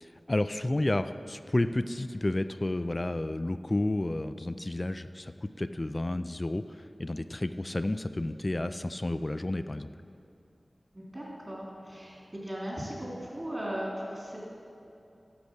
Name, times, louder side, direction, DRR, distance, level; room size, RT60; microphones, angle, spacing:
voice 1, 0.0-9.9, left 1 dB, 35° left, 11 dB, 0.4 m, -31 dB
voice 2, 10.9-14.4, equal, 35° right, -4 dB, 3.0 m, -37 dB
11.5 x 7.0 x 6.4 m, 2.6 s
wide cardioid pair, 60°, 0 cm